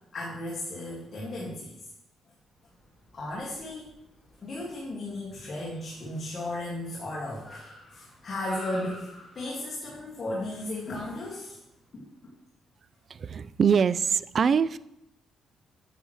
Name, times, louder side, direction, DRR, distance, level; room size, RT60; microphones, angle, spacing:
voice 1, 0.1-1.9 3.1-3.9 4.4-11.6 11.9-12.3, left 1 dB, 40° left, -5 dB, 2.0 m, -35 dB
Car, 2.6-12.1, left 1 dB, 15° left, 2.6 m, -50 dB
voice 2, 13.1-14.8, right 6 dB, 45° right, 17 dB, 0.3 m, -24 dB
8.9 x 7.8 x 3.2 m, 0.84 s
cardioid pair, 90°, 0 cm